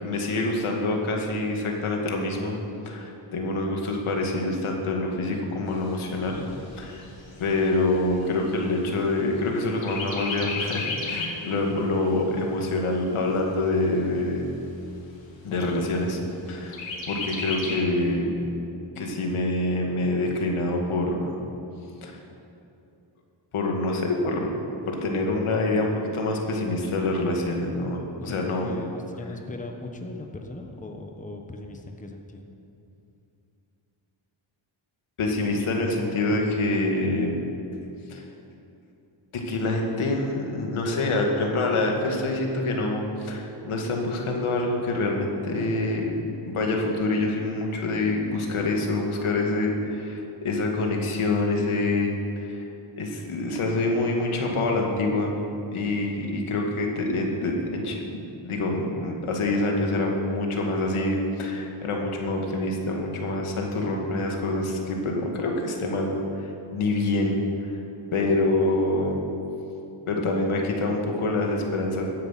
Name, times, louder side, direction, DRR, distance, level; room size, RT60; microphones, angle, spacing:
voice 1, 0.0-6.5 6.8-7.0 7.4-14.5 15.4-16.2 16.5-18.3 19.0-21.4 22.0-22.2 23.5-24.5 24.9-28.7 35.2-37.4 38.1-38.3 39.3-46.1 46.4-52.6 53.0-55.3 55.7-67.4 67.7-67.8 68.1-69.2 70.1-72.0, left 2 dB, 80° left, 1 dB, 2.2 m, -26 dB
Chirp tweet, 5.7-9.4 9.8-11.5 11.9-12.0 12.4-13.4 14.0-14.1 14.4-14.5 14.9-15.5 16.7-17.8, left 3 dB, 65° left, 2.6 m, -34 dB
voice 2, 28.2-32.5, left 2 dB, 15° left, 3 dB, 1.2 m, -38 dB
16.0 x 10.0 x 5.9 m, 2.8 s
wide cardioid pair, 110°, 49 cm